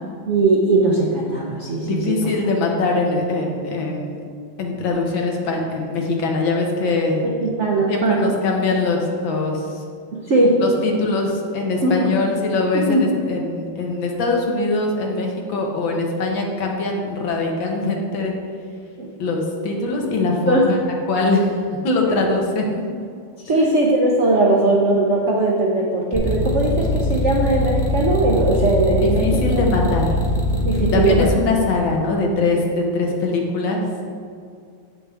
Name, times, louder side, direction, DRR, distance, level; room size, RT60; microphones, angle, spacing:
voice 1, 0.3-2.3 7.2-8.3 10.1-10.6 11.8-12.1 12.7-13.2 19.0-19.1 20.5-20.7 22.1-22.2 23.4-29.6 30.6-31.3, right 2 dB, 60° right, -2 dB, 0.7 m, -19 dB
voice 2, 1.9-4.2 4.6-7.3 7.9-9.8 10.6-18.3 19.2-20.8 21.1-21.5 21.8-22.8 23.5-23.7 29.0-30.1 30.9-33.9, left 3 dB, 70° left, 0 dB, 1.8 m, -22 dB
sound 1, 26.1-31.2, equal, 10° left, 1.0 m, -21 dB
8.7 x 6.9 x 3.5 m, 2.2 s
omnidirectional pair, 2.2 m